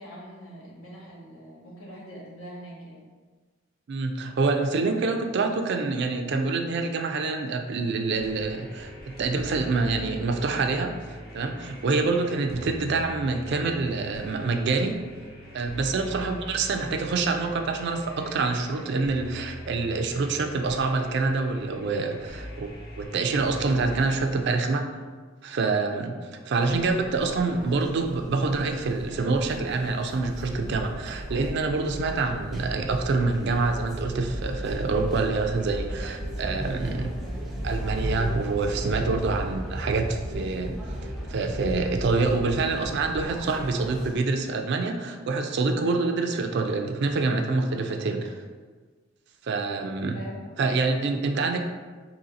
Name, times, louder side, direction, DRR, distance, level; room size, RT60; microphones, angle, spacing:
voice 1, 0.0-3.0 16.1-16.3 50.1-50.5, equal, 80° left, -5 dB, 1.2 m, -43 dB
voice 2, 3.9-8.9 9.2-15.0 15.5-22.7 23.0-24.9 25.4-26.2 26.4-37.1 37.6-48.4 49.4-50.2 50.6-51.6, right 3 dB, 55° right, 5 dB, 0.3 m, -26 dB
sound 1, 8.1-24.2, equal, 50° left, 0.8 m, -42 dB
sound 2, 26.6-44.2, equal, ahead, 0.5 m, -35 dB
2.8 x 2.7 x 4.0 m, 1.4 s
head